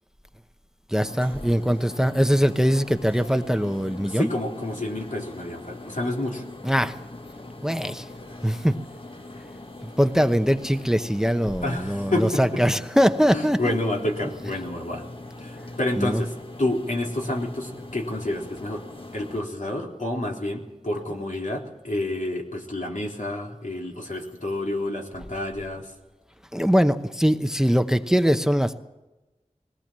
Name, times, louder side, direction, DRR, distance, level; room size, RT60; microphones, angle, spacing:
voice 1, 0.9-4.3 6.6-7.0 7.6-8.1 8.4-8.8 9.8-13.7 16.0-16.2 26.5-28.8, equal, 5° right, 9 dB, 0.9 m, -22 dB
sound 1, 1.0-19.4, left 2 dB, 40° left, 1.5 m, -41 dB
voice 2, 4.1-6.4 11.6-12.4 13.3-15.0 15.4-18.8 19.1-25.9, left 1 dB, 75° left, -1 dB, 3.8 m, -29 dB
21.0 x 18.5 x 7.5 m, 1.1 s
wide cardioid pair, 60°, 13 cm